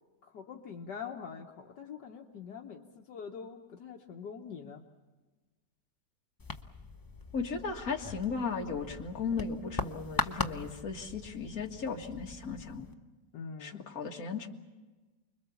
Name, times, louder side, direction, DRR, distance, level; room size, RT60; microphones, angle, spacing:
voice 1, 0.2-4.8 13.3-13.8, left 6 dB, 75° left, 2 dB, 1.7 m, -44 dB
sound 1, 6.4-12.9, left 2 dB, 30° left, 0.3 m, -40 dB
voice 2, 7.3-12.9 13.6-14.5, left 5 dB, 55° left, 2 dB, 2.2 m, -36 dB
29.5 x 22.0 x 7.1 m, 1.2 s
omnidirectional pair, 1.9 m